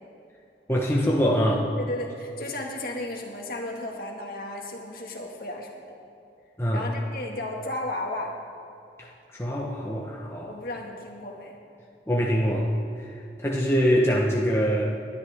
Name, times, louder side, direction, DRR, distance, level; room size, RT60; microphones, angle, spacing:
voice 1, 0.7-1.7 6.6-6.9 9.0-10.5 12.1-12.7 13.0-13.1 13.4-14.8, equal, 15° left, -3 dB, 1.1 m, -24 dB
voice 2, 1.8-6.0 6.7-8.3 10.5-11.5, left 1 dB, 55° left, 0 dB, 2.0 m, -34 dB
21.5 x 11.5 x 3.7 m, 2.7 s
head